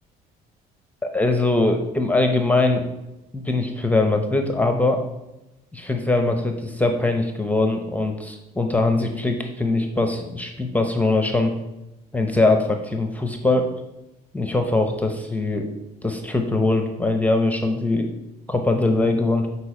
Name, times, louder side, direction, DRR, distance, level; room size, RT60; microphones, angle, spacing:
voice 1, 1.0-2.9 3.3-5.0 5.7-11.6 12.1-13.7 14.3-15.7 16.0-18.1 18.5-19.5, left 2 dB, 10° left, 4 dB, 0.6 m, -22 dB
6.8 x 4.3 x 4.3 m, 0.94 s
cardioid pair, 110°, 17 cm